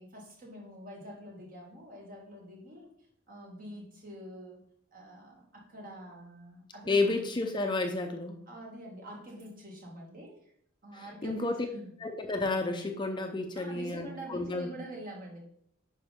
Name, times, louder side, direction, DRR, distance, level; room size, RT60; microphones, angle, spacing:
voice 1, 0.0-2.9 3.3-4.6 4.9-7.0 8.5-10.5 10.8-11.9 13.5-15.4, right 1 dB, 45° right, -1 dB, 2.3 m, -46 dB
voice 2, 6.9-8.4 10.9-11.6 12.0-14.7, left 2 dB, 25° left, 5 dB, 0.7 m, -31 dB
9.8 x 5.4 x 3.6 m, 0.67 s
head